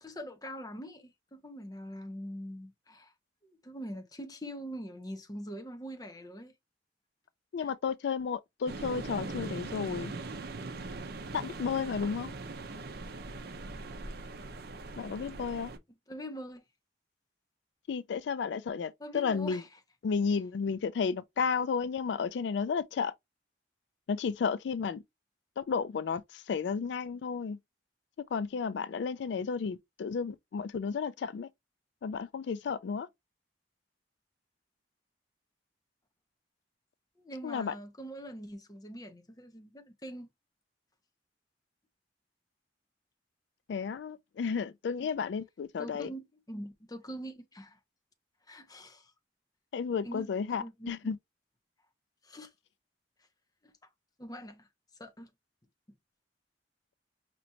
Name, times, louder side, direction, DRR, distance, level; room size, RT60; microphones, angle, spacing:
voice 1, 0.0-3.1 3.4-6.5 7.6-7.7 16.1-16.6 19.0-19.7 37.2-40.3 45.0-45.1 45.8-47.8 48.5-49.1 50.0-50.3 50.6-51.1 52.2-52.5 53.6-53.7 54.2-54.7 55.0-55.3, equal, 20° left, 0.9 m, -43 dB
voice 2, 7.5-10.1 11.3-12.3 15.0-15.7 17.9-19.6 20.0-23.1 24.1-25.0 25.6-27.6 28.3-31.5 32.0-33.1 37.4-37.7 43.7-46.1 49.7-51.2, left 5 dB, 75° left, 0.3 m, -32 dB
sound 1, 8.7-15.8, right 3 dB, 60° right, 0.6 m, -41 dB
5.1 x 3.0 x 2.7 m
head